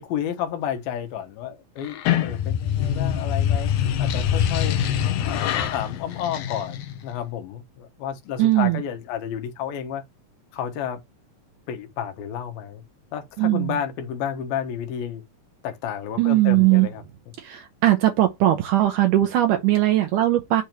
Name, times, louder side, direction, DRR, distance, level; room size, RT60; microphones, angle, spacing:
voice 1, 0.0-3.7 4.0-10.0 10.5-11.0 11.7-12.8 13.1-15.2 15.6-17.0, left 9 dB, 90° left, 3.0 m, -31 dB
sound 1, 1.8-7.1, left 9 dB, 75° left, 1.8 m, -24 dB
voice 2, 8.4-8.8 13.4-13.7 16.2-16.9 17.4-20.6, right 14 dB, 75° right, 2.1 m, -19 dB
8.3 x 3.0 x 5.1 m
omnidirectional pair, 4.1 m